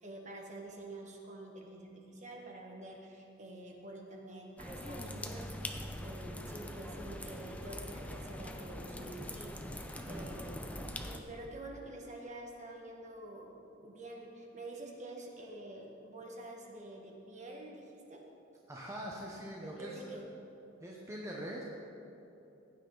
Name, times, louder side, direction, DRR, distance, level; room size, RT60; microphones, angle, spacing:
voice 1, 0.0-10.6 11.0-18.2 19.6-20.3, right 1 dB, 40° right, 0 dB, 1.6 m, -48 dB
sound 1, 4.6-11.2, left 1 dB, 5° left, 0.6 m, -43 dB
voice 2, 9.9-10.3 18.7-20.2 20.8-21.6, equal, 15° right, -3 dB, 0.9 m, -43 dB
15.5 x 9.4 x 4.0 m, 2.9 s
head